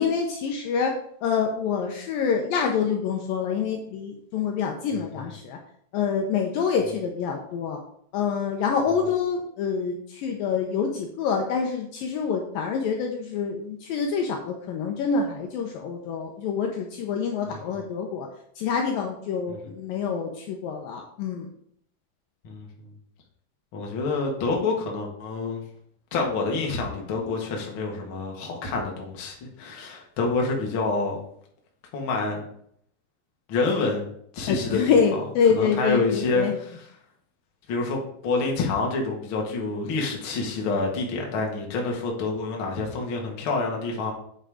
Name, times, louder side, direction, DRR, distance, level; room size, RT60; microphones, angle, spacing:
voice 1, 0.0-5.6 5.9-7.8 8.1-18.3 18.6-21.5 34.5-36.6, left 6 dB, 75° left, 2 dB, 2.3 m, -26 dB
voice 2, 4.9-5.3 17.5-17.6 19.5-19.6 22.4-22.9 23.7-25.6 26.1-31.2 31.9-32.4 33.5-35.2 35.5-36.8 37.7-44.1, left 3 dB, 45° left, 0 dB, 1.7 m, -27 dB
8.0 x 5.7 x 4.9 m, 0.67 s
omnidirectional pair, 4.6 m